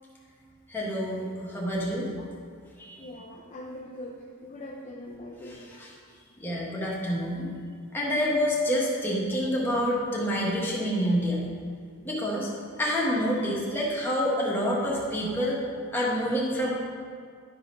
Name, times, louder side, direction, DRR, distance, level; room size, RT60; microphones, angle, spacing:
voice 1, 0.7-2.1 2.8-3.0 5.4-5.9 6.4-7.5 7.9-11.4 12.0-12.5 12.8-15.6 15.9-16.7, equal, 10° left, -5 dB, 1.3 m, -27 dB
voice 2, 3.0-5.8 11.1-11.2 15.4-15.5, left 1 dB, 35° left, -2 dB, 0.5 m, -42 dB
11.0 x 3.9 x 5.2 m, 2.1 s
head